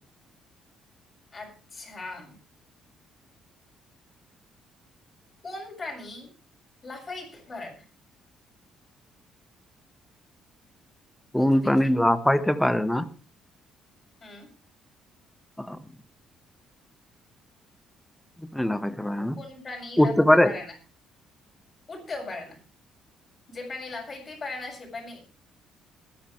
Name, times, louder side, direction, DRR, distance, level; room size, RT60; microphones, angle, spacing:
voice 1, 1.3-2.4 5.4-6.3 6.8-7.9 11.3-11.9 14.2-14.5 19.4-20.8 21.9-22.6 23.5-25.2, left 3 dB, 30° left, -1 dB, 7.1 m, -38 dB
voice 2, 11.3-13.1 15.6-15.8 18.5-19.4 20.0-20.5, left 1 dB, 5° left, 11 dB, 1.3 m, -21 dB
21.5 x 10.5 x 3.3 m, 0.35 s
cardioid pair, 90°, 0 cm